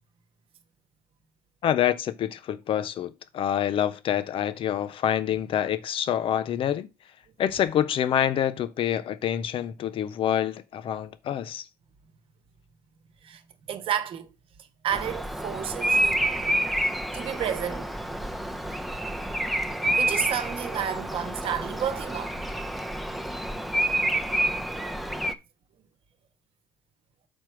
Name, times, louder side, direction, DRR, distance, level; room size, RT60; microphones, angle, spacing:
voice 1, 1.6-6.9 7.4-11.6, left 10 dB, 50° left, 0.8 m, -26 dB
voice 2, 13.7-14.3 14.6-16.3 17.1-18.0 19.9-22.4, right 9 dB, 50° right, 1.2 m, -31 dB
Bird vocalization bird call bird song, 14.9-25.3, right 1 dB, ahead, 0.9 m, -28 dB
6.4 x 4.4 x 6.1 m
hypercardioid pair, 65°, 12 cm